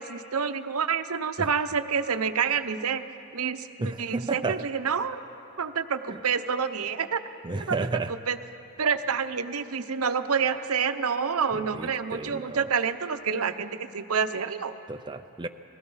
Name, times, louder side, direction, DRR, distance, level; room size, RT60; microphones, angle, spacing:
voice 1, 0.0-3.0 3.3-5.2 5.6-7.2 7.7-7.8 8.3-8.4 8.8-14.7, right 6 dB, 75° right, 10 dB, 0.8 m, -28 dB
voice 2, 3.8-4.7 6.1-6.2 7.4-8.1 11.5-12.7 14.9-15.5, right 3 dB, 20° right, 6 dB, 0.5 m, -32 dB
30.0 x 20.0 x 5.6 m, 2.9 s
head